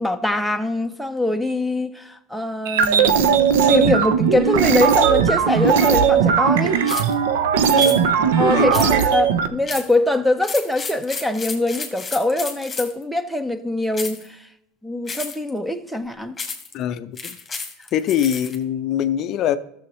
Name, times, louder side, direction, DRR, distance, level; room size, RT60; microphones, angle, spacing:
voice 1, 0.0-3.3 3.7-6.8 8.4-14.4 14.8-16.4, left 2 dB, ahead, 0.7 m, -23 dB
sound 1, 2.7-9.5, right 7 dB, 80° right, 0.7 m, -18 dB
sound 2, 6.9-7.1 7.8-8.0 8.7-9.1 9.7-9.9 10.4-13.0 13.9-14.3 15.1-15.5 16.4-16.7 17.2-18.6, left 4 dB, 15° left, 1.8 m, -32 dB
voice 2, 7.6-8.1 8.5-9.0 16.7-17.4 17.9-19.6, left 10 dB, 45° left, 0.5 m, -23 dB
12.5 x 7.1 x 3.1 m
supercardioid pair, 115°, 0 cm